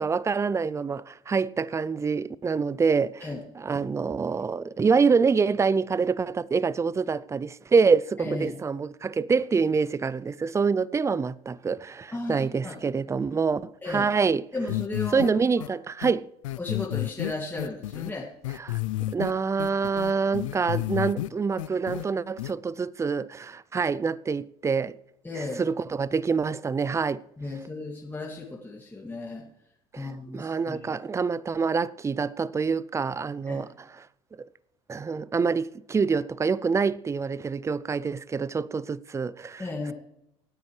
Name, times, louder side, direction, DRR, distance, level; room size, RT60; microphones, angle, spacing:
voice 1, 0.0-3.3 3.6-14.4 15.1-16.3 18.6-25.0 25.3-27.2 29.9-30.1 30.3-33.7 34.0-34.1 34.4-34.5 34.9-39.7, right 5 dB, 20° right, 0.5 m, -26 dB
voice 2, 8.2-8.6 12.1-12.9 13.8-14.1 14.5-15.3 16.6-18.3 25.2-25.6 27.4-29.4 30.0-30.8 33.5-33.7 39.6-39.9, left 2 dB, 10° left, 2.3 m, -35 dB
sound 1, 14.7-15.3 15.6-15.7 16.0-16.1 16.4-18.1 18.4-19.3 19.6-21.3 21.6-22.0 22.4-22.5, left 17 dB, 90° left, 0.5 m, -30 dB
25.0 x 9.4 x 3.3 m
hypercardioid pair, 85°, 16 cm